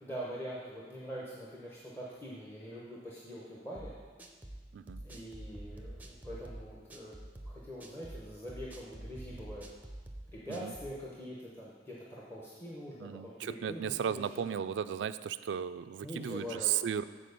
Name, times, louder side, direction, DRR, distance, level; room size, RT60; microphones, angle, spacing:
voice 1, 0.0-3.9 5.0-7.1 7.4-9.7 10.3-14.4 16.0-16.9, equal, 15° left, -6 dB, 0.9 m, -44 dB
sound 1, 3.7-11.0, right 1 dB, 10° right, 0.6 m, -47 dB
voice 2, 13.0-17.0, right 9 dB, 85° right, 14 dB, 0.3 m, -35 dB
7.6 x 4.4 x 6.6 m, 1.5 s
head